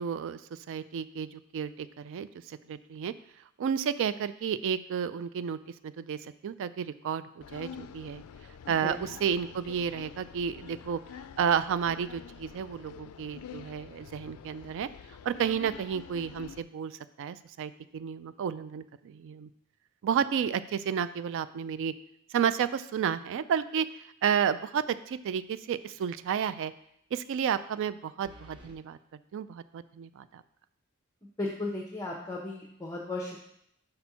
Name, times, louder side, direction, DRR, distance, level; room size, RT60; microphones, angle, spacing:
voice 1, 0.0-3.1 3.6-5.6 5.8-8.2 8.7-11.0 11.4-14.9 15.2-19.5 20.0-21.9 22.3-26.7 27.1-29.0 29.3-30.4, right 7 dB, 60° right, 15 dB, 0.3 m, -31 dB
sound 1, 7.4-16.6, left 7 dB, 75° left, 0.3 m, -47 dB
sound 2, 25.1-25.6 25.9-26.0 28.2-28.8, equal, 20° right, 0.9 m, -53 dB
voice 2, 31.4-33.4, left 2 dB, 15° left, -2 dB, 0.7 m, -35 dB
5.3 x 4.2 x 5.7 m, 0.74 s
head